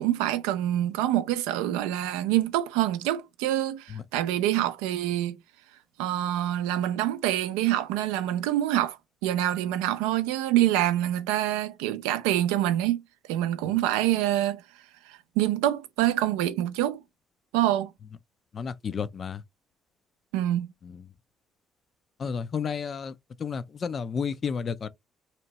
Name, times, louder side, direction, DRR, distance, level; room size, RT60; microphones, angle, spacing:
voice 1, 0.0-5.4 6.0-9.0 9.2-13.0 13.3-14.6 15.1-17.0 17.5-17.9 20.3-20.7, right 13 dB, 90° right, 0.3 m, -26 dB
voice 2, 18.5-19.4 22.2-23.1 23.4-24.9, left 6 dB, 50° left, 0.3 m, -31 dB
2.8 x 2.1 x 2.8 m
supercardioid pair, 65°, 0 cm